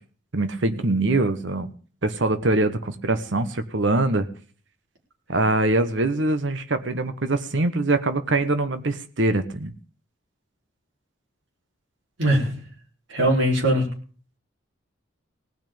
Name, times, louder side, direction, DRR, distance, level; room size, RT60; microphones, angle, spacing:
voice 1, 0.3-1.7 2.0-4.3 5.3-9.7, right 2 dB, 75° right, 10 dB, 1.2 m, -23 dB
voice 2, 12.2-12.5 13.1-13.9, right 1 dB, 90° right, -1 dB, 4.2 m, -20 dB
17.5 x 6.4 x 8.7 m, 0.42 s
head